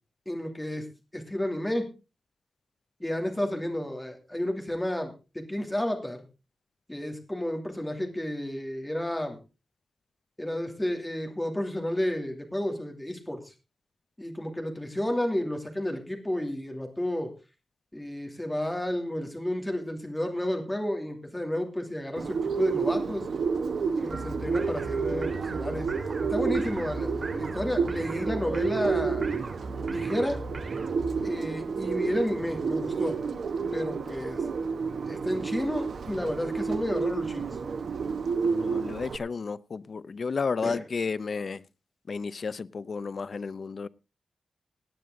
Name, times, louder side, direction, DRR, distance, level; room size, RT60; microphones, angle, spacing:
voice 1, 0.3-0.8 1.1-1.9 3.0-6.2 6.9-9.4 10.4-13.4 14.2-17.3 17.9-23.3 24.0-29.3 29.9-30.4 31.2-33.2 33.7-34.4 35.1-37.5 40.6-40.8, left 1 dB, 10° left, 2.6 m, -31 dB
Bird, 22.2-39.2, right 5 dB, 75° right, 1.1 m, -30 dB
sound 1, 24.1-31.2, right 2 dB, 40° right, 3.1 m, -38 dB
voice 2, 38.4-41.6 42.1-43.9, left 5 dB, 50° left, 0.6 m, -32 dB
18.0 x 9.7 x 3.7 m
wide cardioid pair, 160°, 0 cm